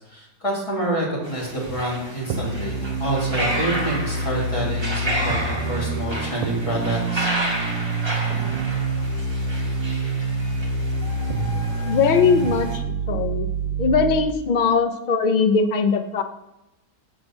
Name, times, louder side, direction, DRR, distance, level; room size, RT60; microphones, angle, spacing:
voice 1, 0.0-7.3, right 1 dB, 20° left, -5 dB, 3.1 m, -28 dB
sound 1, 1.2-12.8, right 1 dB, 20° right, 1.3 m, -31 dB
sound 2, 2.3-14.3, right 3 dB, 70° right, 1.3 m, -26 dB
voice 2, 11.8-12.8 13.1-13.5 13.8-16.2, left 5 dB, 85° left, 8 dB, 0.4 m, -20 dB
8.3 x 5.2 x 6.1 m, 0.92 s
omnidirectional pair, 1.6 m